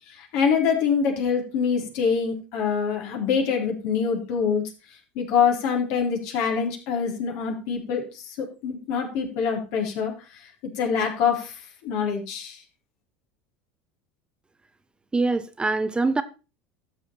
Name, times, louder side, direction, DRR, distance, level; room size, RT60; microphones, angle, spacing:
voice 1, 0.1-4.6 5.2-8.4 8.6-10.1 10.8-11.6 11.8-12.6, left 6 dB, 65° left, 3.8 m, -25 dB
voice 2, 15.1-16.2, right 3 dB, 15° right, 0.9 m, -23 dB
13.0 x 7.3 x 4.4 m
hypercardioid pair, 85°, 6 cm